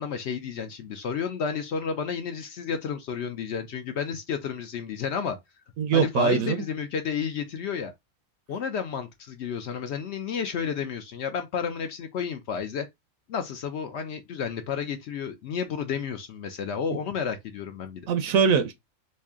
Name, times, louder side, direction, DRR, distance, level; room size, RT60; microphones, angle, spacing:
voice 1, 0.0-5.4 5.9-7.9 8.5-12.9 13.3-18.1, left 6 dB, 65° left, 0.7 m, -31 dB
voice 2, 5.8-6.6 18.1-18.7, right 6 dB, 80° right, 1.0 m, -22 dB
3.2 x 2.8 x 3.5 m
omnidirectional pair, 1.4 m